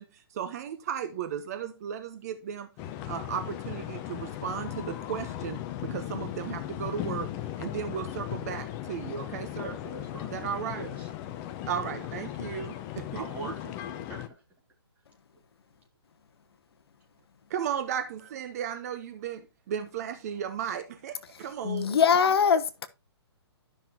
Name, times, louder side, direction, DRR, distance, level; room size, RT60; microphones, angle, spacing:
voice 1, 0.0-2.7 3.1-7.3 7.6-9.8 10.3-10.9 11.6-13.5 17.5-22.0, right 8 dB, 35° right, 0.9 m, -35 dB
sound 1, 2.8-14.3, left 12 dB, 15° left, 0.5 m, -37 dB
voice 2, 9.6-10.3 10.7-11.1 13.1-14.4, right 3 dB, 10° right, 2.2 m, -42 dB
voice 3, 21.6-22.9, left 7 dB, 60° left, 0.9 m, -22 dB
12.5 x 5.8 x 2.9 m
hypercardioid pair, 160°, 14 cm